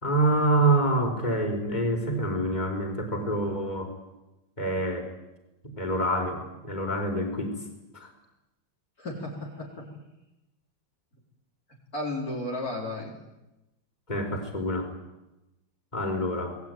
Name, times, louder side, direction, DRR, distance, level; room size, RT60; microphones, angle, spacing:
voice 1, 0.0-3.9 4.6-5.1 5.6-7.5 7.9-8.1 14.1-14.9 15.9-16.6, right 1 dB, 20° left, 3 dB, 4.8 m, -26 dB
voice 2, 9.0-9.9 11.9-13.1, left 1 dB, 45° left, -2 dB, 4.4 m, -33 dB
27.0 x 20.5 x 9.4 m, 0.97 s
omnidirectional pair, 2.3 m